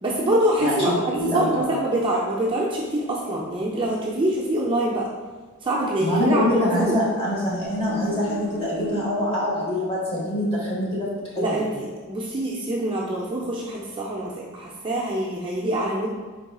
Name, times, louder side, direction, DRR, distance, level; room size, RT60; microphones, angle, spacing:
voice 1, 0.0-5.1 5.6-7.0 11.4-16.1, right 1 dB, 25° right, -4 dB, 0.5 m, -25 dB
voice 2, 1.1-1.7 6.0-11.6, left 1 dB, 25° left, -7 dB, 1.4 m, -25 dB
sound 1, 7.4-10.1 10.4-10.5, left 1 dB, 45° left, 0.7 m, -37 dB
4.6 x 4.1 x 2.3 m, 1.4 s
head